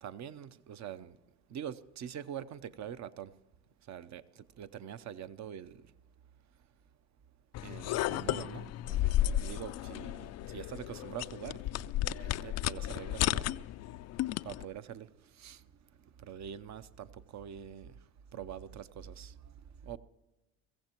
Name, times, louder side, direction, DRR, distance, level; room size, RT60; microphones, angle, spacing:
voice 1, 0.0-1.2 1.5-3.3 3.9-5.9 7.6-9.1 9.4-11.6 12.2-13.6 14.4-15.7 16.2-18.0 18.3-20.0, right 9 dB, 40° right, 0.8 m, -45 dB
sound 1, 7.5-14.6, left 13 dB, 40° left, 0.4 m, -33 dB
23.0 x 15.0 x 3.0 m
hypercardioid pair, 75°, 43 cm